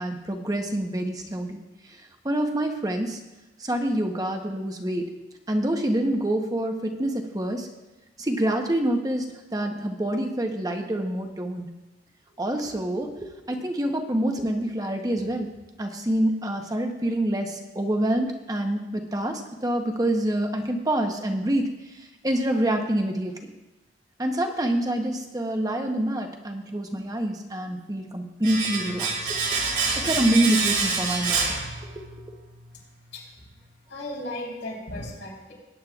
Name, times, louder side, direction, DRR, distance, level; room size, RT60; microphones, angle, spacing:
voice 1, 0.0-1.6 2.2-3.2 3.6-5.1 5.5-7.7 8.2-11.7 12.4-15.5 15.8-21.7 22.2-23.5 24.2-29.4 30.0-31.5 32.1-32.2, right 1 dB, 20° right, 3 dB, 0.8 m, -26 dB
Domestic sounds home sounds, 28.4-32.3 32.5-32.7, right 4 dB, 70° right, 2.8 m, -27 dB
voice 2, 33.1-33.5 33.9-35.5, left 1 dB, 85° left, -4 dB, 3.9 m, -36 dB
19.5 x 9.3 x 2.4 m, 1.0 s
head